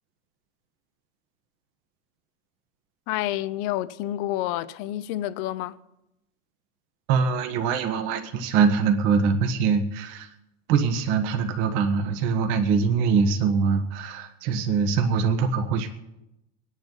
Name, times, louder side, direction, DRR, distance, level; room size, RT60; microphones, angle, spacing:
voice 1, 3.1-5.8, left 14 dB, 50° left, 0.7 m, -29 dB
voice 2, 7.1-10.3 10.7-15.9, right 5 dB, 55° right, 1.6 m, -23 dB
24.5 x 10.0 x 4.1 m
supercardioid pair, 145°, 38 cm